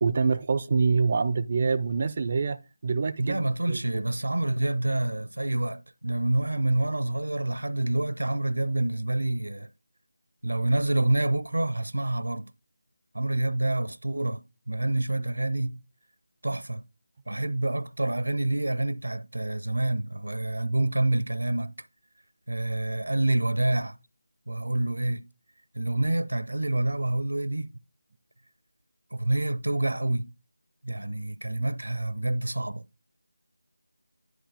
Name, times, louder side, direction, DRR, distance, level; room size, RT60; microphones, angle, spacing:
voice 1, 0.0-4.0, right 4 dB, 35° right, 0.3 m, -26 dB
voice 2, 3.2-9.7 10.4-12.5 13.1-15.8 16.4-16.8 17.3-21.7 22.5-24.0 24.5-25.2 25.7-27.7 29.1-30.3 30.8-32.8, right 2 dB, 80° right, 0.6 m, -27 dB
10.0 x 4.3 x 4.8 m
figure-of-eight pair, 165°, 0 cm